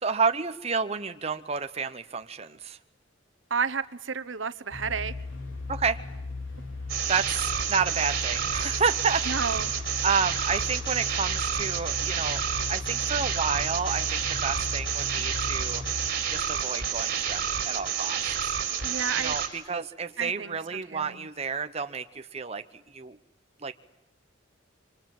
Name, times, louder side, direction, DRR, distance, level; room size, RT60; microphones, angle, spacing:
voice 1, 0.0-2.8 5.7-6.0 7.1-9.7 10.0-12.4 12.7-15.8 16.3-18.2 19.1-22.6 22.9-23.2 23.6-23.7, right 5 dB, 30° right, 8 dB, 0.9 m, -30 dB
voice 2, 3.5-5.1 9.3-9.7 18.8-19.3 20.2-20.5 20.9-21.3, right 6 dB, 75° right, 11 dB, 1.1 m, -31 dB
sound 1, 4.7-16.1, left 3 dB, 80° left, 4.4 m, -37 dB
sound 2, 6.9-19.5, right 8 dB, 50° right, 4.5 m, -29 dB
27.0 x 25.0 x 7.7 m, 0.89 s
head